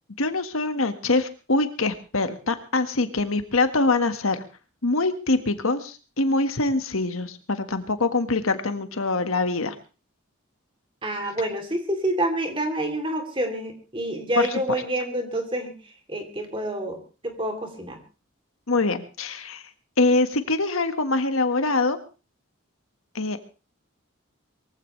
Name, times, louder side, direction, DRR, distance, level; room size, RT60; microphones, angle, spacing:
voice 1, 0.2-4.4 4.8-9.8 14.4-14.5 18.7-19.6 20.0-22.0 23.1-23.4, left 3 dB, 85° left, 8 dB, 1.7 m, -24 dB
voice 2, 11.0-15.7 16.1-18.0, right 1 dB, 25° right, 4 dB, 3.1 m, -28 dB
22.5 x 15.5 x 3.3 m, 0.34 s
head